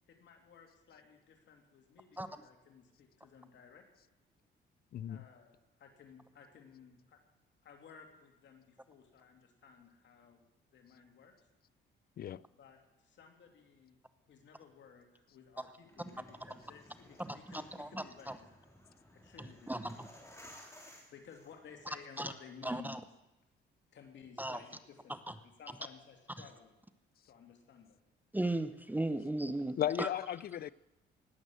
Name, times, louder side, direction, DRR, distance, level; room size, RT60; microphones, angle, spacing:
voice 1, 0.1-3.9 5.1-7.2 7.6-10.4 10.7-11.3 12.5-14.0 14.3-18.8 19.1-20.0 21.1-23.0 23.9-25.2 25.4-26.7 27.2-28.0, left 6 dB, 65° left, 2.8 m, -56 dB
voice 2, 4.9-5.3 12.2-12.4 29.8-30.7, left 11 dB, 50° left, 0.4 m, -35 dB
sound 1, 15.8-22.0, left 1 dB, 15° left, 3.3 m, -57 dB
voice 3, 17.2-18.4 19.4-20.1 22.2-22.3 22.6-23.0 24.4-24.6 25.1-25.3 26.4-26.5 28.3-30.1, right 1 dB, 10° right, 0.8 m, -37 dB
19.0 x 7.8 x 7.8 m
cardioid pair, 90°, 20 cm